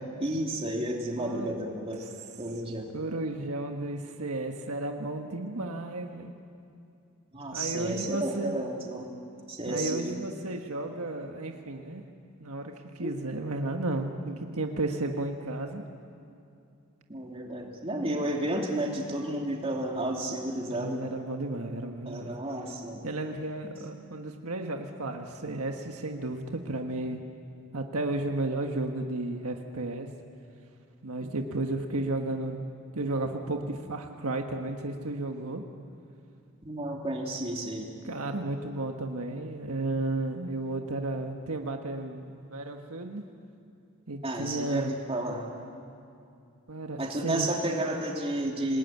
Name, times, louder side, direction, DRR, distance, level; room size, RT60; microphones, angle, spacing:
voice 1, 0.2-2.1 2.4-2.9 7.3-9.1 9.5-10.2 13.0-13.1 17.1-21.0 22.0-23.0 36.6-37.9 44.2-45.7 47.0-48.8, right 1 dB, 25° right, 0 dB, 3.0 m, -32 dB
voice 2, 1.2-1.5 2.9-6.3 7.5-8.5 9.7-12.0 12.4-15.8 20.6-22.3 23.0-27.2 27.7-30.1 31.0-32.6 32.9-35.6 38.0-43.2 44.1-44.9 46.7-47.5, right 2 dB, 80° right, 4 dB, 1.5 m, -33 dB
27.0 x 19.5 x 9.5 m, 2.5 s
head